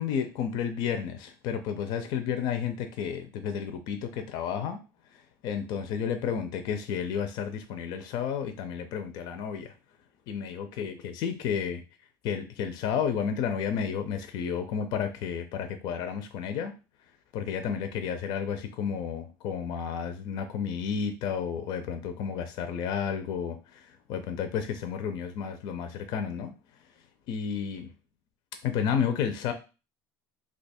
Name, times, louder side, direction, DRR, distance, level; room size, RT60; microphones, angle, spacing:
voice 1, 0.0-4.8 5.1-9.7 10.3-11.8 12.2-16.7 17.3-26.5 27.3-27.9 28.6-29.5, left 7 dB, 60° left, 8 dB, 0.5 m, -31 dB
2.8 x 2.3 x 4.1 m, 0.31 s
cardioid pair, 135°, 8 cm